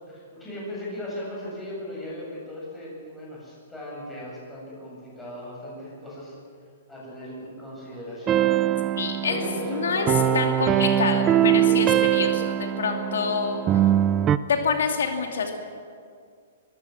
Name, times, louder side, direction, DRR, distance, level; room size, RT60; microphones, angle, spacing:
voice 1, 0.0-6.4 6.9-8.5 9.2-10.6, left 1 dB, 5° left, -6 dB, 7.9 m, -37 dB
sound 1, 8.3-14.4, right 11 dB, 15° right, 0.5 m, -22 dB
voice 2, 9.0-9.4 9.7-10.1 10.3-13.8 14.5-15.6, left 5 dB, 85° left, 3 dB, 2.6 m, -27 dB
24.0 x 15.0 x 7.4 m, 2.2 s
hypercardioid pair, 165°, 0 cm